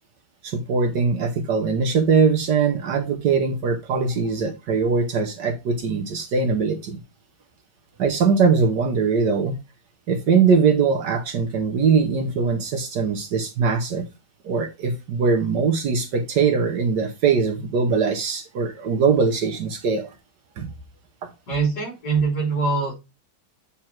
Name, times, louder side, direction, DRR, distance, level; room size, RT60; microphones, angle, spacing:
voice 1, 0.4-7.0 8.0-9.6 10.1-14.0 14.4-20.1 20.6-20.7 21.2-21.3, right 5 dB, 65° right, 1.4 m, -21 dB
voice 2, 21.5-22.9, right 4 dB, 55° left, 3.9 m, -23 dB
8.5 x 3.5 x 4.4 m
omnidirectional pair, 2.2 m